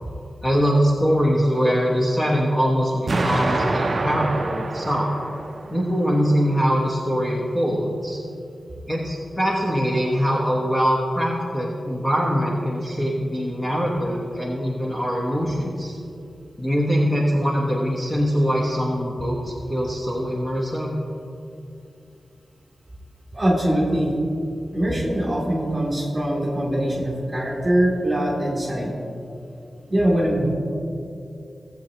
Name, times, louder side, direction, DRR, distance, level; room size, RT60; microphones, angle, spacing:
voice 1, 0.4-5.1 5.7-8.2 8.9-16.0 16.6-21.0, equal, 10° left, -3 dB, 1.0 m, -22 dB
Explosion, 3.1-6.1, right 2 dB, 45° right, 0.5 m, -26 dB
voice 2, 23.3-24.1 24.7-29.0 29.9-30.5, right 1 dB, 20° right, -3 dB, 2.7 m, -22 dB
17.5 x 7.7 x 2.9 m, 2.6 s
wide cardioid pair, 130°, 0 cm